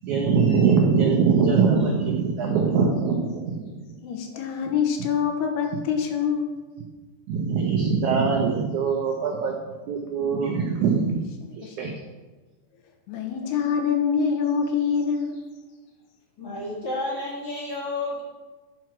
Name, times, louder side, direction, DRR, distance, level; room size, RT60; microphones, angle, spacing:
voice 1, 0.0-3.8 7.3-9.6 9.9-11.3 11.6-11.9, right 5 dB, 80° right, 0 dB, 1.7 m, -22 dB
voice 2, 4.0-6.5 11.6-11.9 13.1-15.4, left 7 dB, 80° left, 3 dB, 3.0 m, -25 dB
voice 3, 16.4-18.2, left 2 dB, 45° left, -5 dB, 1.3 m, -31 dB
11.0 x 4.6 x 5.9 m, 1.3 s
omnidirectional pair, 4.7 m